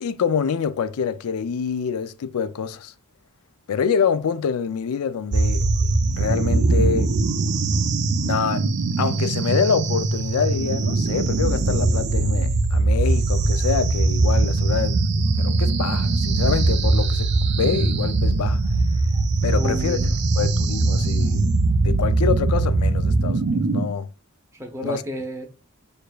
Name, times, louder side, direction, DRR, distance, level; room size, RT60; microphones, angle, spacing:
voice 1, 0.0-2.9 3.7-5.7 6.2-7.1 8.2-15.0 15.4-18.6 19.4-21.5 21.8-24.1 24.8-25.0, left 6 dB, 90° left, 0.4 m, -26 dB
sound 1, 5.3-23.9, right 3 dB, 55° right, 0.5 m, -21 dB
voice 2, 19.5-20.1 24.5-25.5, equal, 15° right, 0.7 m, -31 dB
6.5 x 2.6 x 2.3 m
head